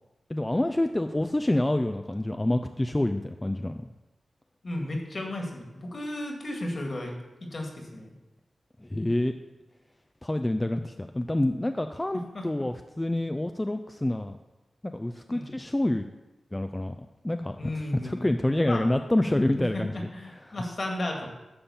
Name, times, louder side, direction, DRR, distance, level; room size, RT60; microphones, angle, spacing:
voice 1, 0.3-3.7 8.8-9.3 10.2-14.4 14.9-16.1 16.5-17.0 17.2-17.6 18.0-20.1, left 1 dB, 15° left, 7 dB, 0.4 m, -27 dB
voice 2, 4.6-7.2 7.4-8.1 12.3-12.4 15.3-15.5 17.6-18.3 18.6-18.8 19.6-21.3, left 1 dB, 50° left, 1 dB, 2.0 m, -34 dB
11.0 x 3.7 x 7.1 m, 1.1 s
cardioid pair, 65°, 0 cm